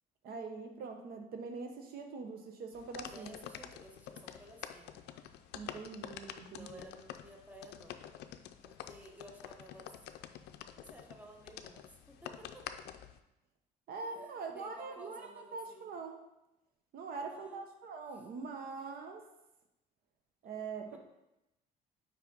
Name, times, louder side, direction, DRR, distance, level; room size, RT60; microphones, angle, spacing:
voice 1, 0.2-3.3 5.5-6.8 13.9-16.2 16.9-19.2 20.4-21.0, right 4 dB, 65° right, 4 dB, 0.8 m, -43 dB
sound 1, 2.7-13.2, left 10 dB, 80° left, 0.4 m, -48 dB
voice 2, 3.0-5.0 6.5-8.0 8.6-9.9 10.8-12.7 13.9-15.9 17.2-17.6 18.1-18.2 20.8-21.0, equal, 10° right, 1 dB, 1.0 m, -54 dB
5.8 x 4.8 x 3.9 m, 0.91 s
cardioid pair, 110°, 17 cm